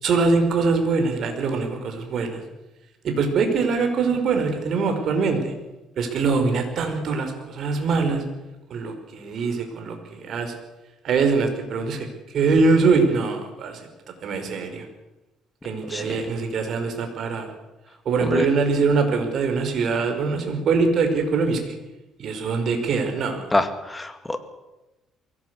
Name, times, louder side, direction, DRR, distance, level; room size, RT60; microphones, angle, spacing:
voice 1, 0.0-2.4 3.0-5.5 6.0-8.2 8.7-10.5 11.0-12.1 12.3-13.9 14.2-14.9 15.6-17.5 18.0-21.7 22.2-23.5, right 4 dB, 55° right, 5 dB, 5.1 m, -23 dB
voice 2, 15.8-16.3 18.2-18.5 23.5-24.4, left 2 dB, 10° left, 9 dB, 2.3 m, -25 dB
22.5 x 17.5 x 8.3 m, 1.0 s
cardioid pair, 120°, 0 cm